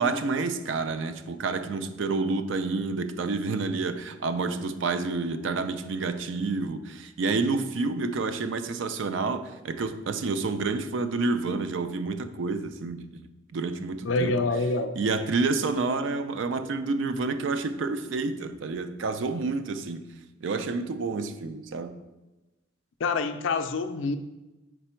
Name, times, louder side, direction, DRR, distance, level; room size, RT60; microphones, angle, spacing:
voice 1, 0.0-13.2 13.5-14.4 15.0-20.1 20.4-22.0, right 3 dB, 75° right, 0.4 m, -29 dB
voice 2, 14.0-14.9 23.0-24.2, left 3 dB, 90° left, 0.4 m, -26 dB
5.0 x 4.6 x 4.4 m
head